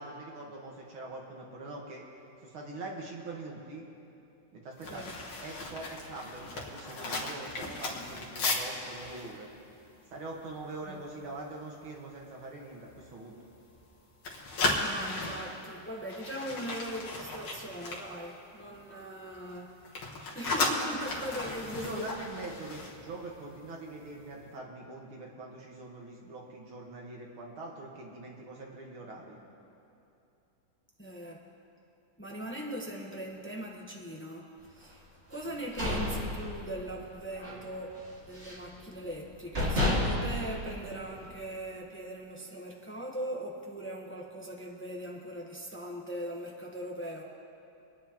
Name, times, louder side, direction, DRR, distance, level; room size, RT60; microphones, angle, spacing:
voice 1, 0.0-2.0 2.4-3.9 4.5-5.0 5.4-9.5 10.1-13.4 21.6-29.4, right 2 dB, 80° right, -1 dB, 2.4 m, -43 dB
sound 1, 4.8-10.9 11.2-11.4 11.8-12.2 12.7-13.9 14.2-18.9 19.2-23.7 24.0-24.2, left 2 dB, 80° left, 2.3 m, -36 dB
voice 2, 14.8-19.9 20.3-22.1 29.1-29.3 31.0-31.5 32.2-35.0 35.3-47.2, equal, 10° left, -1 dB, 0.7 m, -40 dB
sound 2, 35.4-37.0 37.3-37.6 38.0-38.7 39.2-39.3 39.5-41.4, left 1 dB, 30° right, 2.5 m, -31 dB
27.0 x 9.6 x 3.0 m, 2.8 s
omnidirectional pair, 2.3 m